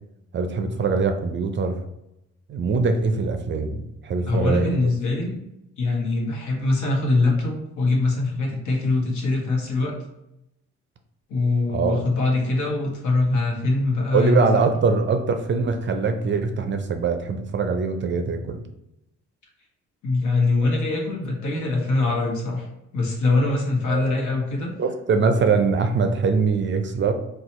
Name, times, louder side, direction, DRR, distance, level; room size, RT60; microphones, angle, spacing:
voice 1, 0.3-1.8 2.5-4.9 11.7-12.0 14.1-18.7 23.9-24.0 24.8-27.1, right 4 dB, 40° right, 6 dB, 0.4 m, -22 dB
voice 2, 4.3-5.4 5.8-9.9 11.3-14.7 20.0-22.7 22.9-24.7, left 3 dB, 75° left, 0 dB, 1.0 m, -23 dB
2.7 x 2.3 x 4.1 m, 0.87 s
cardioid pair, 90°, 30 cm